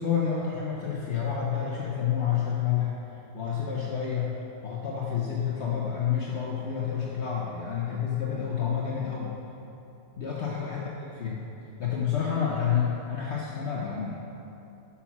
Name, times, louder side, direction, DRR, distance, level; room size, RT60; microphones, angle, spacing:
voice 1, 0.0-2.9 3.3-4.3 4.6-9.4 10.2-10.9 11.2-11.4 11.8-14.2, left 8 dB, 55° left, -4 dB, 1.1 m, -29 dB
8.5 x 5.9 x 5.9 m, 2.9 s
omnidirectional pair, 1.5 m